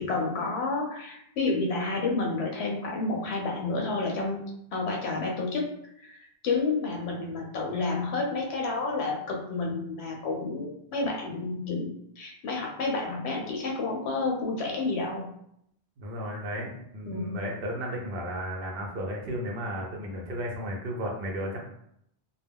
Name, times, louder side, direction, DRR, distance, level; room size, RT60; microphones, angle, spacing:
voice 1, 0.0-4.4 4.7-5.7 6.0-11.9 12.2-15.3 17.0-17.4, left 3 dB, 90° left, -1 dB, 0.9 m, -30 dB
voice 2, 16.0-21.6, equal, 65° right, -1 dB, 0.8 m, -34 dB
2.3 x 2.0 x 3.4 m, 0.74 s
omnidirectional pair, 1.1 m